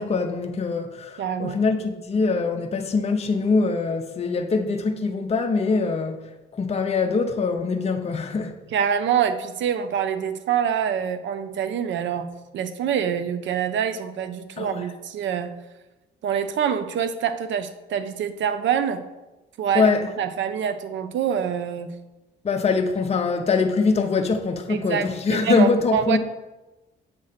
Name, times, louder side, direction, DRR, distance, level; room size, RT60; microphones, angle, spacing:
voice 1, 0.0-8.5 14.6-14.9 19.7-20.1 22.4-26.2, left 4 dB, 30° left, 0.6 m, -23 dB
voice 2, 1.2-1.6 8.7-12.3 12.5-15.5 16.2-19.0 19.6-19.9 20.2-21.9 24.7-26.2, right 8 dB, 70° right, 0.6 m, -25 dB
7.5 x 3.1 x 5.7 m
cardioid pair, 90°, 20 cm